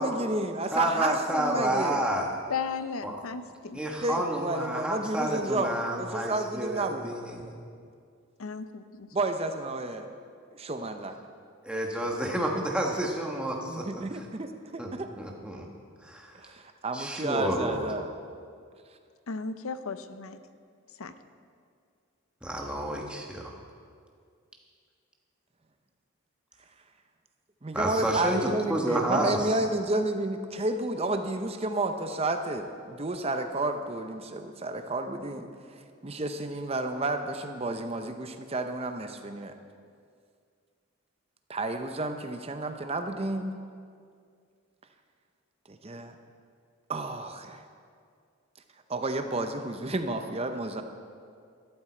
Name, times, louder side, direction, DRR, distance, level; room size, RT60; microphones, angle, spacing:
voice 1, 0.0-2.0 4.0-7.1 9.1-10.1 10.5-11.2 13.7-15.1 16.4-18.1 27.6-35.5 36.0-39.5 41.5-43.5 45.7-46.2 46.9-47.6 48.9-50.8, right 2 dB, 25° right, 7 dB, 0.6 m, -31 dB
voice 2, 0.7-2.3 3.0-3.2 3.7-7.5 11.6-14.3 14.8-15.7 16.0-16.3 16.9-17.9 22.4-23.5 27.7-29.6, right 1 dB, 5° right, 0 dB, 1.2 m, -30 dB
voice 3, 2.5-3.8 8.4-9.1 19.3-20.4 21.0-21.1, left 5 dB, 80° left, 11 dB, 0.6 m, -35 dB
13.0 x 12.5 x 4.4 m, 2.2 s
head